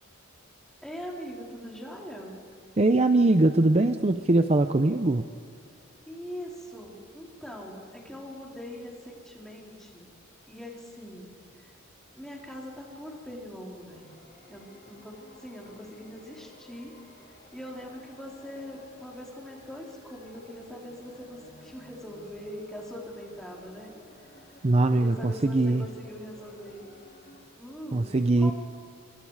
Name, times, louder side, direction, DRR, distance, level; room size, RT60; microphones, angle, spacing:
voice 1, 0.8-2.4 6.1-10.1 10.5-11.8 12.1-14.1 14.5-17.0 17.3-23.9 24.2-24.3 24.9-26.9 27.6-28.5, equal, 5° left, -3 dB, 3.9 m, -42 dB
voice 2, 2.8-5.2 24.6-25.9 27.9-28.5, right 2 dB, 30° right, 8 dB, 0.6 m, -22 dB
sound 1, 13.7-27.4, left 2 dB, 45° left, 3.9 m, -54 dB
25.5 x 25.0 x 4.9 m, 2.5 s
head